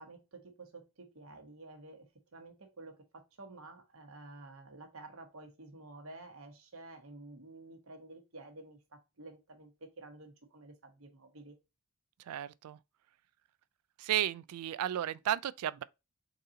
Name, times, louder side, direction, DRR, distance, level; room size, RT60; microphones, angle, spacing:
voice 1, 0.0-11.6, right 2 dB, 70° right, 1.0 m, -51 dB
voice 2, 12.3-12.8 14.0-15.8, right 11 dB, 85° right, 0.3 m, -33 dB
3.9 x 2.8 x 3.7 m
head